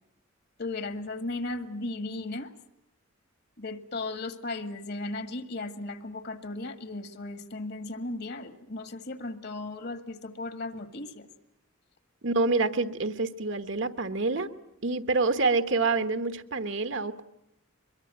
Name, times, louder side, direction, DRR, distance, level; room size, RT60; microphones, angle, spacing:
voice 1, 0.6-2.5 3.6-11.3, left 2 dB, 55° left, 9 dB, 1.9 m, -36 dB
voice 2, 12.2-14.5 14.8-17.2, right 3 dB, 60° right, 10 dB, 1.3 m, -27 dB
23.5 x 22.5 x 9.2 m, 0.83 s
head